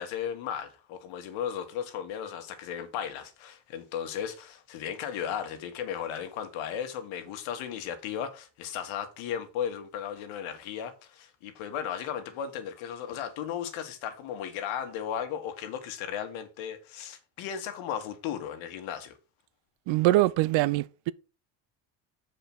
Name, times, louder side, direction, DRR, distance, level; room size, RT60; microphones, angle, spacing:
voice 1, 0.0-19.1, left 9 dB, 75° left, 1.9 m, -35 dB
voice 2, 19.9-21.1, right 17 dB, 70° right, 0.8 m, -23 dB
6.9 x 5.1 x 6.2 m
supercardioid pair, 100°, 48 cm